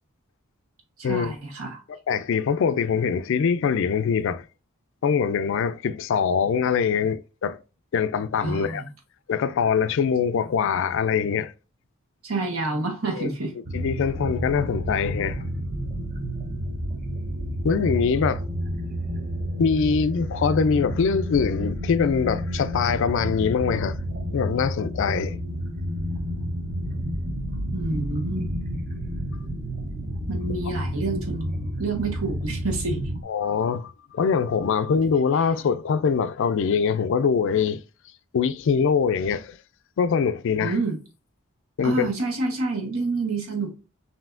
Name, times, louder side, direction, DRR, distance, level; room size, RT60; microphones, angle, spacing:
voice 1, 1.0-1.8 8.4-8.9 12.2-13.6 27.7-28.6 30.3-33.0 40.6-41.0 41.8-43.7, right 3 dB, 80° right, 1.2 m, -28 dB
voice 2, 2.1-4.4 5.0-7.6 7.9-8.8 9.3-11.5 13.1-13.3 13.7-15.4 17.6-18.4 19.6-24.0 24.3-25.4 33.3-37.8 38.3-39.6 40.0-40.7 41.8-42.1, left 6 dB, 60° left, 0.3 m, -23 dB
sound 1, 13.7-33.2, equal, 40° right, 0.6 m, -30 dB
5.5 x 2.7 x 2.5 m
head